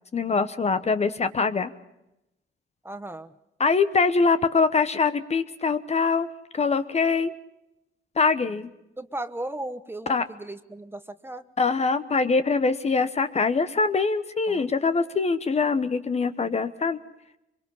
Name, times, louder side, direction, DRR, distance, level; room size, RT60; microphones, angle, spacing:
voice 1, 0.1-1.7 3.6-6.3 6.5-7.3 8.2-8.7 10.1-10.3 11.6-17.0, left 4 dB, 35° left, 11 dB, 1.1 m, -23 dB
voice 2, 2.8-3.3 9.0-11.4 14.5-14.7, right 1 dB, 10° right, 10 dB, 1.1 m, -36 dB
24.0 x 23.0 x 5.5 m, 0.88 s
cardioid pair, 90°, 20 cm